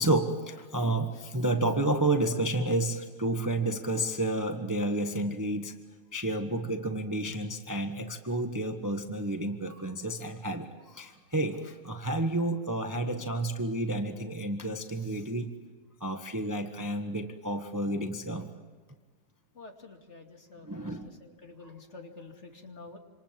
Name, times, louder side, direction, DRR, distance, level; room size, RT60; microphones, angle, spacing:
voice 1, 0.0-5.7 6.1-15.5 16.0-18.5 20.6-21.1, right 1 dB, 10° right, 5 dB, 1.1 m, -30 dB
voice 2, 19.5-23.0, left 3 dB, 40° left, 3 dB, 2.9 m, -48 dB
27.5 x 26.5 x 7.5 m, 1.5 s
omnidirectional pair, 1.9 m